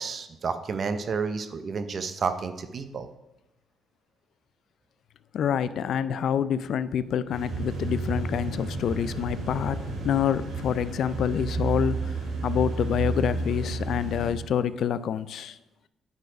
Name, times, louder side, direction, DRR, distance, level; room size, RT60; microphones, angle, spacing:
voice 1, 0.0-3.1, right 5 dB, 50° right, 9 dB, 0.7 m, -30 dB
voice 2, 5.3-12.1 12.4-15.6, left 8 dB, 70° left, 15 dB, 0.3 m, -27 dB
sound 1, 7.3-14.3, right 3 dB, 85° right, 2.0 m, -31 dB
9.2 x 4.1 x 5.0 m, 0.95 s
cardioid pair, 90°, 0 cm